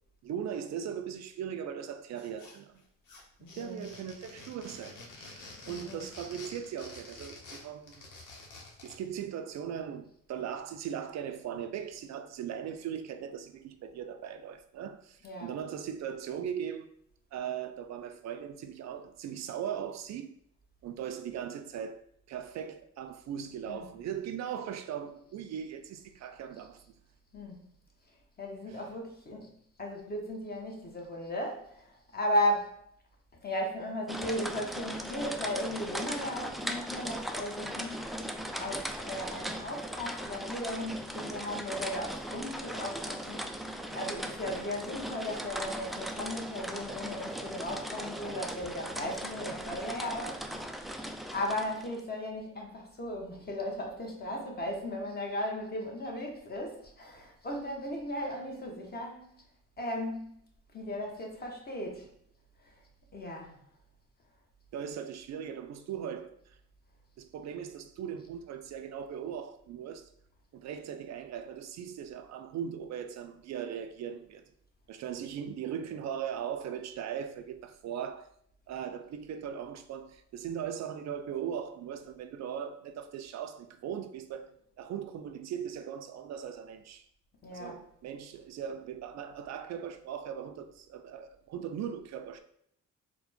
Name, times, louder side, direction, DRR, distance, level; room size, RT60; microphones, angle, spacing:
voice 1, 0.2-2.8 3.5-8.1 8.8-16.9 17.3-20.3 20.8-22.0 22.3-26.8 64.7-66.6 67.2-70.1 70.5-74.5 74.9-78.3 78.7-87.1 87.5-92.4, right 8 dB, 60° right, 0.4 m, -39 dB
sound 1, 2.2-2.8 3.1-9.0, left 3 dB, 90° left, 1.0 m, -49 dB
voice 2, 3.4-3.9 5.6-6.1 15.2-15.6 23.6-23.9 27.3-27.6 28.4-29.5 29.8-32.7 33.4-38.0 38.6-43.5 43.9-50.5 51.3-59.3 59.8-60.3 60.7-62.1 62.6-62.7 63.1-63.5 87.4-87.8, left 1 dB, 30° left, 1.1 m, -36 dB
sound 2, 34.1-52.0, equal, ahead, 0.3 m, -38 dB
4.2 x 2.2 x 4.2 m
cardioid pair, 90°, 30 cm